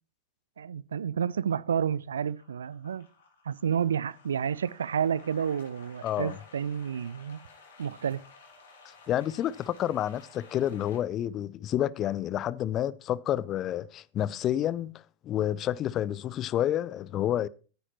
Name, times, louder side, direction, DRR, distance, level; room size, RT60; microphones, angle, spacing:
voice 1, 0.6-3.1 3.4-7.4 7.8-8.2, right 8 dB, 65° right, 0.4 m, -30 dB
sound 1, 1.5-1.8 2.2-11.0, left 4 dB, 60° left, 3.2 m, -54 dB
voice 2, 6.0-6.4 8.8-14.9 15.2-17.5, left 11 dB, 30° left, 0.5 m, -29 dB
13.5 x 10.0 x 2.9 m
figure-of-eight pair, 90°, 0 cm